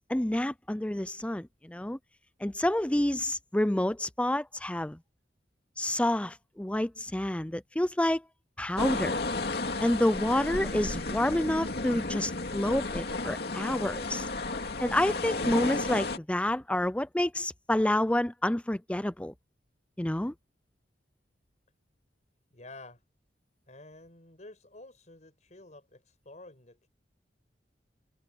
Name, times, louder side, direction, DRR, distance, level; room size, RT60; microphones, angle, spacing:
voice 1, 0.1-2.0 2.4-5.0 5.8-8.2 8.6-9.2 9.8-14.2 14.8-19.3 20.0-20.3, left 1 dB, 5° left, 0.4 m, -28 dB
sound 1, 8.8-16.2, left 2 dB, 65° left, 2.5 m, -33 dB
voice 2, 22.5-23.0 23.7-26.9, left 2 dB, 45° left, 5.4 m, -50 dB
head